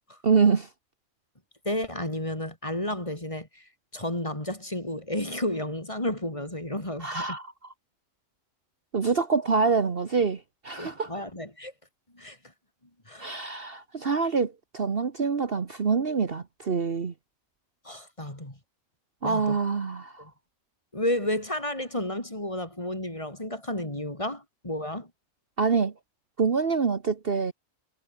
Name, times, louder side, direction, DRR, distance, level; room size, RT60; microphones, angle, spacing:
voice 1, 0.2-0.7 7.0-7.5 8.9-11.1 13.2-17.1 19.2-20.2 25.6-25.9 26.4-27.5, right 5 dB, 45° right, 1.5 m, -26 dB
voice 2, 1.6-3.6 3.9-7.4 10.8-11.7 12.1-12.4 13.1-13.3 17.8-18.6 19.2-19.5 20.2-20.3 20.9-25.1, left 1 dB, 25° left, 4.4 m, -32 dB
omnidirectional pair, 1.4 m